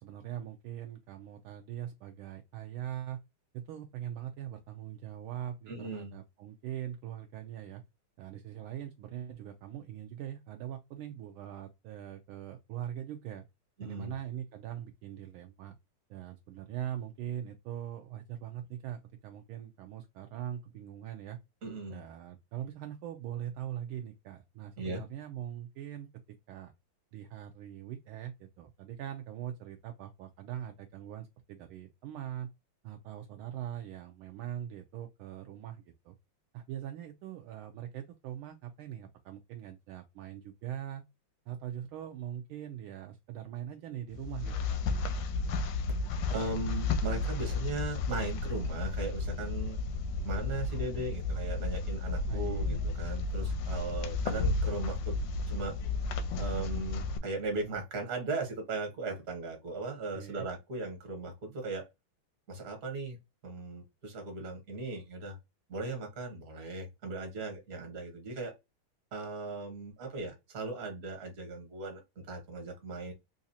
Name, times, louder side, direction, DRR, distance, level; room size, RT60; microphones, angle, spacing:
voice 1, 0.0-3.2 3.5-7.8 8.2-13.4 13.8-15.7 16.1-21.4 21.9-26.1 26.5-26.7 27.1-32.5 32.8-36.2 36.5-41.0 41.5-44.8 52.3-52.7 60.1-60.5, right 11 dB, 75° right, 1.3 m, -42 dB
voice 2, 5.7-6.1 13.8-14.1 21.6-22.0 24.8-25.0 46.3-49.8 50.2-55.8 56.4-61.9 62.5-63.2 63.4-65.4 65.7-68.5 69.1-73.1, right 2 dB, 45° right, 1.7 m, -38 dB
sound 1, 44.1-57.2, left 3 dB, 75° left, 1.1 m, -33 dB
4.0 x 2.5 x 2.7 m
omnidirectional pair, 2.4 m